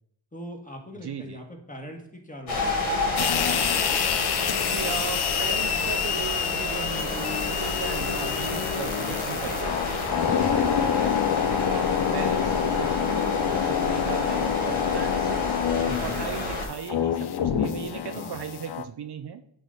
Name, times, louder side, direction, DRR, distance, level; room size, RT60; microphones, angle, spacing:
voice 1, 0.3-3.2 3.8-4.1 10.2-10.6 15.9-16.2 18.1-18.5, equal, 15° left, 2 dB, 1.9 m, -41 dB
voice 2, 1.0-1.4 4.6-11.1 11.7-15.4 16.0-19.4, right 8 dB, 55° right, 8 dB, 0.6 m, -37 dB
sound 1, 2.5-16.7, left 2 dB, 80° left, 1.8 m, -30 dB
sound 2, 3.2-18.8, left 9 dB, 55° left, 0.6 m, -27 dB
8.9 x 3.2 x 4.0 m, 0.75 s
cardioid pair, 50°, 48 cm